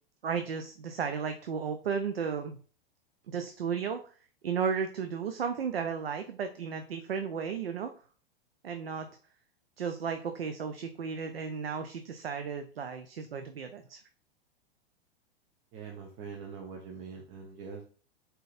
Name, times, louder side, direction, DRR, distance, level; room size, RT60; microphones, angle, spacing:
voice 1, 0.2-2.6 3.3-4.0 4.4-7.9 8.6-9.1 9.8-14.0, right 6 dB, 80° right, 7 dB, 0.5 m, -34 dB
voice 2, 15.7-17.8, right 5 dB, 40° right, 1 dB, 0.8 m, -43 dB
4.1 x 3.8 x 2.5 m, 0.40 s
figure-of-eight pair, 100°, 30 cm